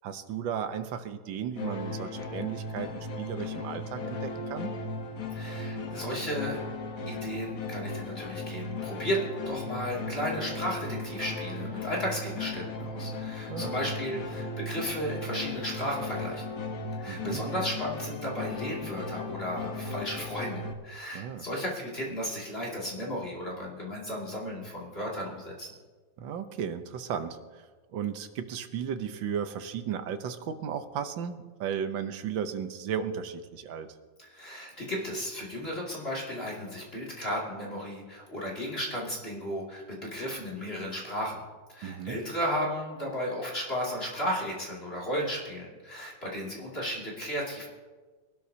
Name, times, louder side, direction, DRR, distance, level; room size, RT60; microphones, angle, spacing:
voice 1, 0.0-4.7 13.5-13.8 14.1-14.2 17.1-17.4 21.1-21.4 26.2-27.7 27.9-33.9 41.8-42.2, right 8 dB, 75° right, 9 dB, 1.6 m, -35 dB
sound 1, 1.6-20.7, left 2 dB, 50° left, 1.3 m, -36 dB
voice 2, 5.3-6.6 7.1-16.5 17.0-25.7 34.2-41.4 41.7-47.7, equal, 30° left, -4 dB, 2.7 m, -34 dB
22.5 x 12.0 x 2.8 m, 1.4 s
omnidirectional pair, 2.1 m